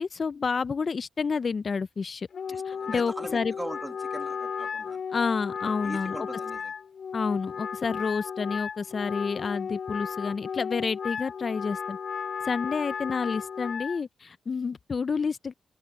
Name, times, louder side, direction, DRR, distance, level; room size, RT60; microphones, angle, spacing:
voice 1, 0.0-2.3 2.7-3.5 5.1-6.2 7.1-12.0 12.4-15.5, left 5 dB, 45° left, 0.4 m, -29 dB
Wind instrument woodwind instrument, 2.3-14.0, left 6 dB, 65° left, 2.2 m, -34 dB
voice 2, 2.5-5.0 5.6-6.7, right 1 dB, 10° right, 1.9 m, -41 dB
cardioid pair, 75°, 0 cm